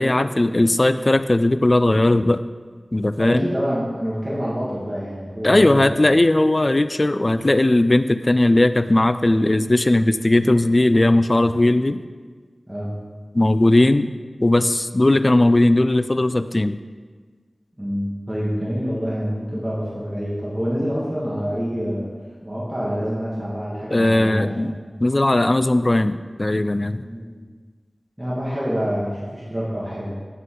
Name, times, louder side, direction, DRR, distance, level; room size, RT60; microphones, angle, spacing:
voice 1, 0.0-2.4 2.9-3.5 5.4-12.0 13.3-14.1 14.4-16.8 23.9-27.1, left 1 dB, 40° left, 12 dB, 0.3 m, -18 dB
voice 2, 3.2-6.0 11.5-11.6 12.7-12.9 17.8-22.1 22.4-24.5 24.8-25.0 27.0-27.4 28.2-30.2, equal, 15° right, -7 dB, 1.9 m, -26 dB
8.0 x 7.5 x 3.8 m, 1.5 s
wide cardioid pair, 50°, 0 cm